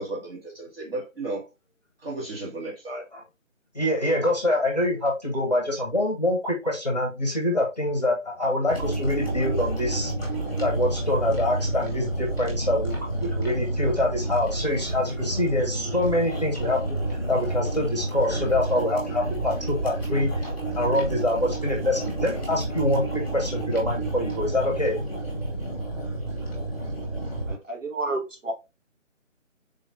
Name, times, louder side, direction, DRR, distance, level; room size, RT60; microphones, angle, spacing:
voice 1, 0.0-1.5 2.0-3.1, right 2 dB, 45° right, 2.0 m, -34 dB
voice 2, 3.7-10.1 10.6-17.0 17.3-20.3 20.8-25.0, left 1 dB, 30° left, 0.8 m, -25 dB
sound 1, 8.7-27.5, right 2 dB, 15° left, 1.1 m, -30 dB
voice 3, 27.5-28.5, right 2 dB, 70° right, 1.4 m, -30 dB
3.9 x 3.2 x 2.5 m
figure-of-eight pair, 155°, 39 cm